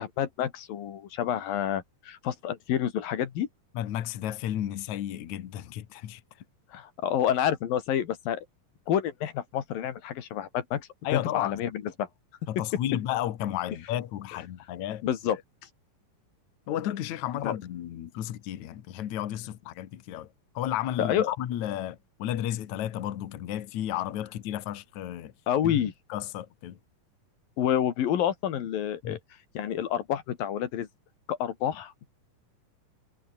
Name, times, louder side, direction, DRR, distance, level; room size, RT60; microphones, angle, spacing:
voice 1, 0.0-3.5 6.7-8.5 8.9-12.1 15.0-15.4 17.4-17.5 21.0-21.3 25.5-25.9 27.6-29.2 29.6-30.9 31.3-32.1, left 10 dB, 85° left, 3.8 m, -28 dB
voice 2, 3.8-6.2 11.0-11.6 12.5-15.0 15.3-15.4 16.7-20.3 20.5-25.3 25.6-25.8 26.1-26.8 29.0-29.2, left 12 dB, 60° left, 2.7 m, -33 dB
omnidirectional pair, 4.0 m